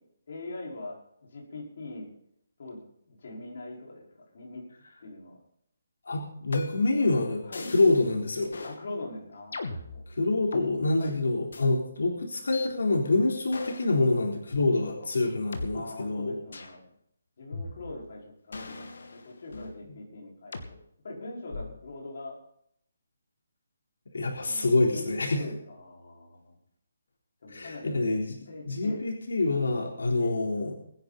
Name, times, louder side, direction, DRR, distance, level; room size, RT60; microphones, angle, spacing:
voice 1, 0.3-2.1 2.6-2.8 3.1-4.0 4.3-4.6 5.0-5.3 7.4-7.7 8.6-10.0 11.0-11.2 14.8-15.1 15.7-16.9 17.4-20.8 21.0-22.3 24.4-26.5 27.4-28.0 28.5-29.0 30.2-30.4, left 2 dB, 45° left, -2 dB, 5.2 m, -42 dB
voice 2, 6.1-7.4 7.7-8.5 10.2-16.3 24.1-25.4 27.5-28.4 28.7-30.8, left 2 dB, 85° left, 0 dB, 3.9 m, -26 dB
sound 1, 6.5-7.0 7.5-8.1 8.5-8.8 9.5-10.7 11.5-11.7 12.5-12.7 13.5-13.9 14.5-14.6 15.5-15.7 16.5-16.8 17.5-18.1 18.5-19.8 20.5-20.7 21.5-21.9, left 3 dB, 70° left, 2.5 m, -39 dB
24.0 x 10.5 x 4.2 m, 0.72 s
hypercardioid pair, 175°, 0 cm